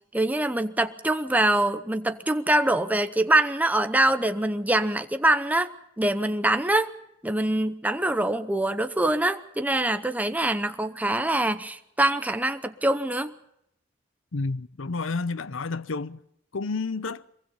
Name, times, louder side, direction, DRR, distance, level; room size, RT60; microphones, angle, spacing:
voice 1, 0.0-6.9 7.2-13.3, right 1 dB, 10° right, 0.8 m, -24 dB
voice 2, 14.3-16.2 16.5-17.2, left 3 dB, 80° left, 0.8 m, -30 dB
23.0 x 22.5 x 5.5 m
head